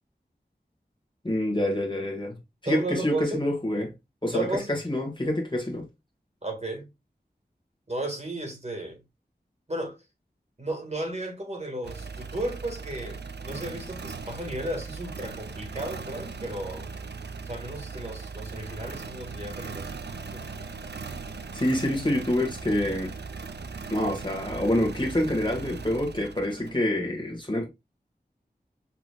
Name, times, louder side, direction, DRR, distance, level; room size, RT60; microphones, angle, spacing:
voice 1, 1.2-2.4 2.6-3.9 4.2-5.9 21.5-23.1 23.9-27.7, left 1 dB, 30° left, 1.5 m, -27 dB
voice 2, 2.7-3.4 4.3-4.7 6.4-6.9 7.9-9.0 9.7-10.0 10.6-16.9 17.4-19.9 20.3-20.5, right 2 dB, 40° right, 1.8 m, -34 dB
sound 1, 11.8-26.9, right 4 dB, 80° right, 0.5 m, -39 dB
5.8 x 2.9 x 2.3 m
wide cardioid pair, 50°, 17 cm